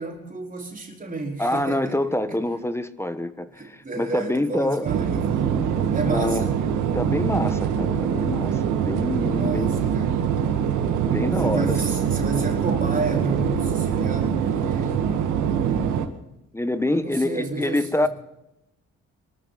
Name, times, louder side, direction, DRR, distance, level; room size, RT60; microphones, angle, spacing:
voice 1, 0.0-2.0 2.3-2.4 3.6-6.6 9.3-10.1 11.4-15.0 16.9-18.1, right 2 dB, 25° right, 4.1 m, -31 dB
voice 2, 1.4-4.9 6.0-6.5 6.9-9.8 11.1-12.0 16.5-18.1, left 1 dB, 10° left, 1.1 m, -26 dB
sound 1, 4.8-16.1, right 8 dB, 85° right, 2.0 m, -24 dB
23.5 x 13.5 x 4.0 m
cardioid pair, 90°, 30 cm